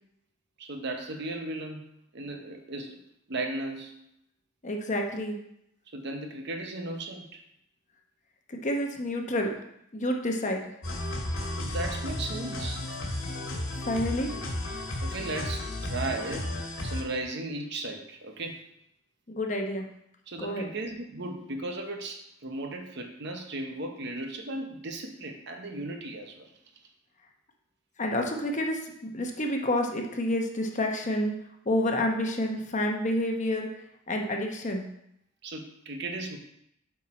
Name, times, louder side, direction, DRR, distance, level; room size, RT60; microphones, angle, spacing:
voice 1, 0.6-1.8 2.1-3.0 3.3-4.0 5.9-7.4 11.6-12.9 15.0-16.5 16.8-18.7 20.3-26.5 35.4-36.4, right 2 dB, 55° right, 4 dB, 0.9 m, -36 dB
voice 2, 4.6-5.4 8.5-9.6 9.9-10.6 13.8-14.3 19.3-19.9 20.4-20.7 28.0-31.3 31.6-33.7 34.1-34.9, left 1 dB, 35° left, 2 dB, 0.9 m, -29 dB
sound 1, 10.8-17.0, left 1 dB, 85° left, 1.9 m, -33 dB
8.5 x 4.4 x 4.3 m, 0.77 s
head